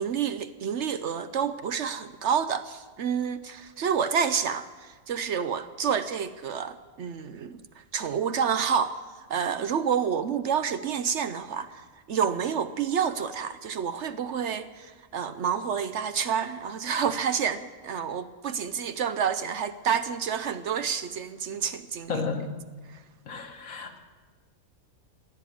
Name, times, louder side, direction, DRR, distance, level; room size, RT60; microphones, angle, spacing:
voice 1, 0.0-22.2 22.9-23.0, right 7 dB, 60° right, 0.9 m, -29 dB
voice 2, 22.1-22.6 23.3-24.0, left 4 dB, 70° left, 1.9 m, -32 dB
15.5 x 10.5 x 8.5 m
omnidirectional pair, 1.5 m